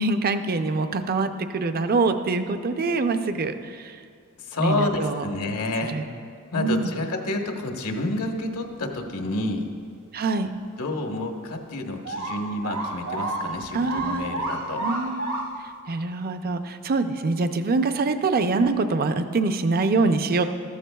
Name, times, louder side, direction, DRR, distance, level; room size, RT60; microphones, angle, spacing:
voice 1, 0.0-4.0 4.6-5.2 5.9-6.0 6.6-6.9 10.1-10.5 13.7-14.3 14.8-15.3 15.9-20.4, right 3 dB, 45° right, 8 dB, 0.5 m, -24 dB
voice 2, 4.5-6.0 6.5-9.7 10.8-14.8, left 2 dB, 80° left, 3 dB, 1.1 m, -29 dB
sound 1, 12.1-15.7, right 2 dB, 65° right, 1.2 m, -30 dB
14.0 x 13.5 x 2.3 m, 2.2 s
head